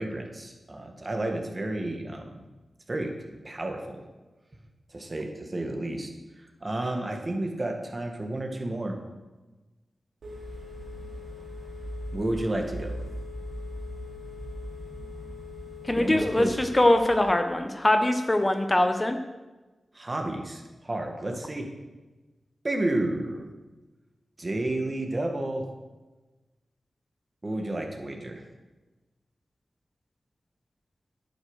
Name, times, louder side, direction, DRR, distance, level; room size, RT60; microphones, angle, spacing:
voice 1, 0.0-2.4 2.9-3.1 3.4-4.0 4.9-6.1 6.6-9.0 12.1-13.0 16.0-16.5 19.9-21.7 22.6-23.5 24.4-25.7 27.4-28.4, right 1 dB, 40° right, 3 dB, 2.1 m, -31 dB
Telephone, 10.2-17.2, left 1 dB, 80° right, 3.0 m, -39 dB
voice 2, 15.8-19.2, left 1 dB, 25° left, 6 dB, 1.1 m, -22 dB
9.1 x 8.5 x 6.4 m, 1.2 s
cardioid pair, 40°, 0 cm